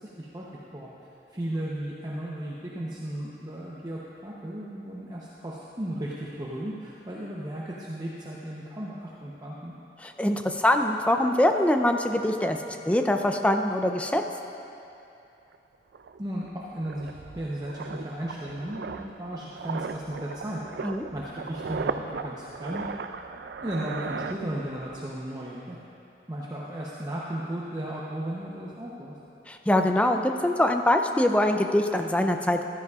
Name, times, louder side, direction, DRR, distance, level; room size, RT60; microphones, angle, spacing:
voice 1, 1.3-9.7 16.2-17.1 17.3-20.6 21.1-22.8 23.6-25.8 26.3-29.1, right 1 dB, 20° right, -6 dB, 0.7 m, -35 dB
voice 2, 10.0-12.6 12.8-14.2 20.8-21.1 29.5-32.6, left 1 dB, 10° left, 5 dB, 0.4 m, -23 dB
sound 1, 15.5-15.6 15.9-25.0 25.2-25.5, right 5 dB, 75° right, 0.4 m, -37 dB
14.5 x 12.0 x 2.4 m, 2.8 s
head